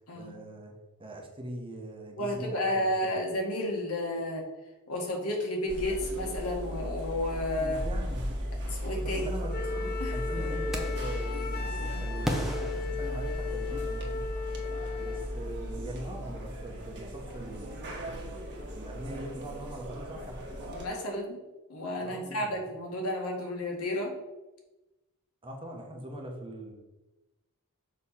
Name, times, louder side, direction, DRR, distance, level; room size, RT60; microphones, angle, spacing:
voice 1, 0.1-0.7 1.0-3.2 7.6-8.3 8.9-9.6 10.1-14.2 15.0-18.2 18.7-20.4 22.0-22.6 25.4-26.7, right 1 dB, 25° right, 1 dB, 1.0 m, -42 dB
voice 2, 2.2-4.5 4.9-7.8 8.7-9.3 9.8-10.1 20.7-21.4 21.7-24.1, left 1 dB, 80° left, 0 dB, 1.7 m, -32 dB
sound 1, 5.7-20.9, equal, 55° right, 1.4 m, -36 dB
Wind instrument woodwind instrument, 9.5-15.3, left 6 dB, 45° left, 0.5 m, -37 dB
sound 2, 10.7-11.2 12.2-13.8, equal, ahead, 0.8 m, -35 dB
6.6 x 3.2 x 5.6 m, 1.0 s
head